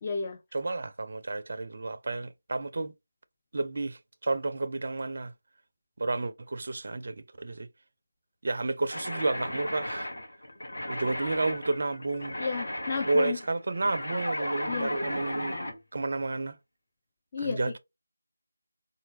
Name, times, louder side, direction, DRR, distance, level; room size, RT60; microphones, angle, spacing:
voice 1, 0.0-0.4 12.4-13.4 14.7-14.9 17.3-17.7, left 5 dB, 25° left, 0.4 m, -32 dB
voice 2, 0.5-2.9 3.5-5.3 6.0-7.7 8.4-10.1 10.9-12.4 13.0-15.6 15.9-16.6 17.4-17.8, right 2 dB, 45° right, 0.4 m, -31 dB
sound 1, 8.9-15.8, left 1 dB, 60° left, 1.1 m, -35 dB
4.3 x 2.2 x 3.1 m
figure-of-eight pair, 160°, 0 cm